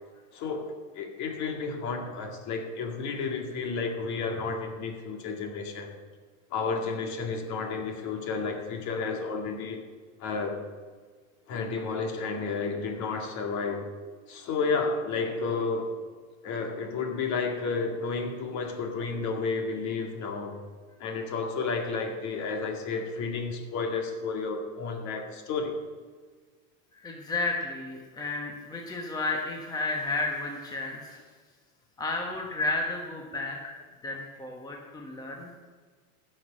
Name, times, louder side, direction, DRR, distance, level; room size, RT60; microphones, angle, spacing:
voice 1, 0.3-5.9 6.5-9.8 10.2-10.6 11.5-13.9 14.3-15.9 16.4-20.6 21.0-25.7, left 4 dB, 40° left, 4 dB, 2.1 m, -31 dB
voice 2, 26.9-31.2 32.0-33.7 34.0-35.5, left 3 dB, 10° left, 0 dB, 1.2 m, -32 dB
15.0 x 6.6 x 6.3 m, 1.5 s
supercardioid pair, 135°, 43 cm